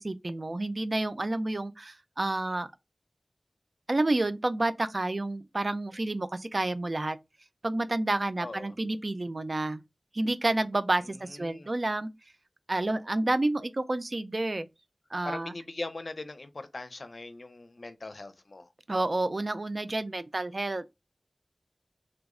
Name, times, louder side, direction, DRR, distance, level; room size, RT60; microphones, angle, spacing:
voice 1, 0.0-2.7 3.9-7.2 7.6-9.8 10.1-12.1 12.7-14.7 15.1-15.5 18.9-20.9, right 2 dB, 55° right, 0.4 m, -29 dB
voice 2, 8.4-8.7 11.0-11.7 15.2-18.7, left 2 dB, 70° left, 0.5 m, -41 dB
3.3 x 2.0 x 3.6 m
wide cardioid pair, 55°, 0 cm